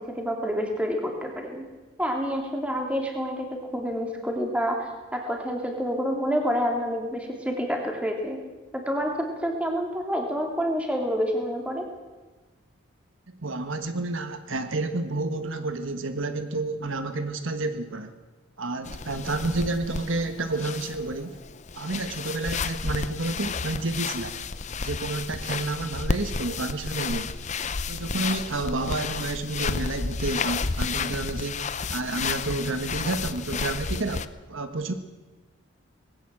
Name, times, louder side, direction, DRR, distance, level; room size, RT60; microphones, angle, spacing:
voice 1, 0.0-1.6 2.0-8.4 8.7-11.9, equal, 5° right, 1 dB, 3.1 m, -28 dB
voice 2, 13.4-18.1 18.6-21.4 21.7-24.4 24.8-27.4 27.9-34.9, right 2 dB, 70° right, 8 dB, 1.4 m, -30 dB
sound 1, 18.8-34.3, left 4 dB, 35° left, 0.7 m, -32 dB
20.5 x 17.5 x 7.8 m, 1.2 s
head